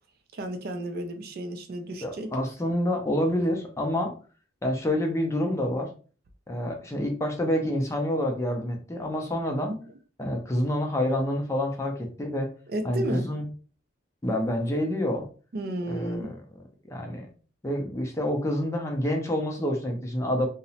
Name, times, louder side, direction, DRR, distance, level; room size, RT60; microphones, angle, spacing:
voice 1, 0.3-2.4 9.7-9.8 12.7-13.3 15.5-16.4, right 1 dB, 50° right, 0.3 m, -33 dB
voice 2, 2.0-4.1 4.6-5.9 6.5-9.7 10.2-12.5 12.8-13.5 14.2-15.3 15.9-16.4 16.9-17.3 17.6-20.5, left 1 dB, 15° left, 0.4 m, -27 dB
2.8 x 2.0 x 2.7 m
head